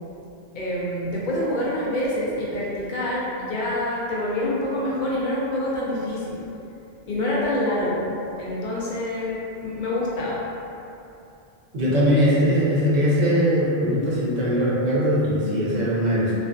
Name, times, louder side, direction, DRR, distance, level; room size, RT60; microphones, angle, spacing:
voice 1, 0.5-6.4 7.1-8.0 8.4-10.4, left 1 dB, 60° left, -6 dB, 0.6 m, -26 dB
voice 2, 11.7-16.3, equal, 50° right, -7 dB, 0.6 m, -21 dB
2.4 x 2.4 x 2.3 m, 2.7 s
omnidirectional pair, 1.0 m